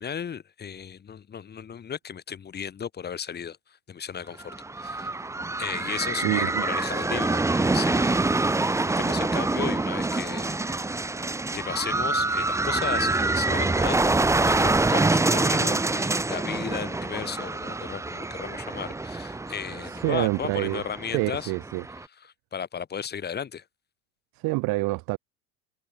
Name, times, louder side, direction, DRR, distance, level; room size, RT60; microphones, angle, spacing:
voice 1, 0.0-5.1 5.6-8.3 8.6-10.9 11.5-14.1 14.5-21.5 22.2-23.6, left 7 dB, 25° left, 1.3 m, -35 dB
sound 1, 4.4-22.0, right 2 dB, 5° right, 0.8 m, -26 dB
voice 2, 6.2-6.7 19.8-20.8 21.1-21.8 24.3-25.2, right 24 dB, 50° right, 1.1 m, -27 dB
hypercardioid pair, 90°, 43 cm